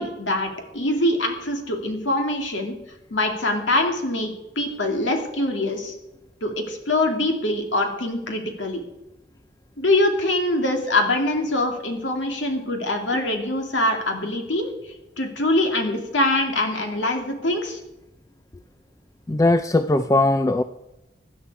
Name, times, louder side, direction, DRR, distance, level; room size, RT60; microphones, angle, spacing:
voice 1, 0.0-2.7 3.1-5.9 6.4-8.8 9.8-14.7 15.2-17.8, left 1 dB, 80° left, 3 dB, 2.4 m, -24 dB
voice 2, 19.3-20.6, left 2 dB, 15° left, 10 dB, 0.3 m, -19 dB
16.5 x 11.0 x 4.7 m, 0.93 s
head